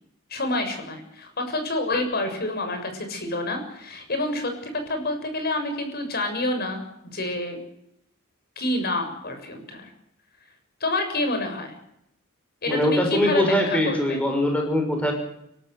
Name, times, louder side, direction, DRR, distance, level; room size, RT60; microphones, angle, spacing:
voice 1, 0.3-7.6 8.6-9.9 10.8-11.7 12.6-14.2, left 2 dB, 50° left, 6 dB, 7.0 m, -28 dB
voice 2, 12.7-15.1, left 1 dB, 5° left, 2 dB, 6.0 m, -22 dB
30.0 x 14.0 x 8.1 m, 0.76 s
head